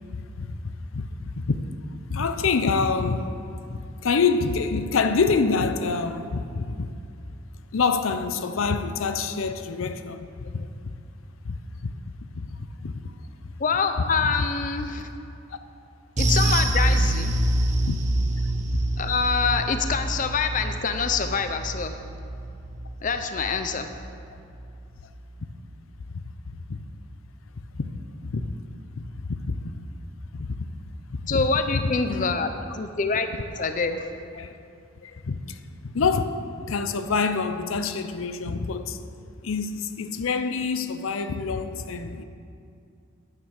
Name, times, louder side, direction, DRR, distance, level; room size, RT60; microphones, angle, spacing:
voice 1, 0.1-0.5 0.9-1.6 2.1-3.3 3.7-6.9 7.7-10.7 11.4-11.5 11.8-11.9 12.3-12.5 12.8-12.9 14.2-14.3 17.9-18.0 18.7-18.8 26.7-26.8 27.8-27.9 28.2-28.5 29.0-29.6 30.3-30.7 31.1-31.4 31.7-31.8 32.1-32.3 33.6-33.7 34.4-34.5 35.0-35.6 35.8-36.3 36.7-39.0 39.4-42.2, left 4 dB, 80° left, 0.6 m, -26 dB
voice 2, 13.6-15.1 16.2-17.3 19.0-22.0 23.0-23.9 31.3-33.3 33.6-34.1, left 5 dB, 40° left, 0.5 m, -25 dB
sound 1, 16.2-24.8 25.1-25.3 25.7-25.8, right 1 dB, 35° right, 0.9 m, -26 dB
9.8 x 9.5 x 6.4 m
head